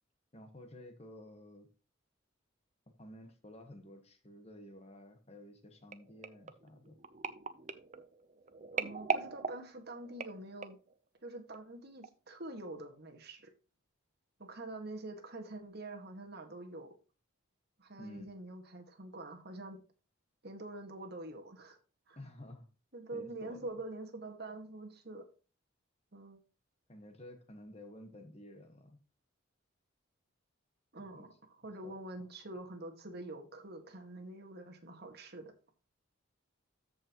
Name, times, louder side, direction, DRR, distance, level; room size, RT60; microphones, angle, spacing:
voice 1, 0.3-1.7 3.0-7.0 18.0-18.3 22.2-22.7 23.1-23.7 26.9-29.0 31.1-31.3 31.8-32.3, left 1 dB, 30° left, 1.3 m, -52 dB
sound 1, 5.9-10.9 11.5-11.8 12.0-12.1, right 5 dB, 35° right, 0.7 m, -40 dB
voice 2, 8.7-10.8 11.2-13.5 14.4-16.9 17.8-19.8 20.4-21.8 22.1-22.2 22.9-25.2 26.1-26.4 30.9-35.5, right 2 dB, 50° right, 1.8 m, -46 dB
13.5 x 5.4 x 3.0 m
head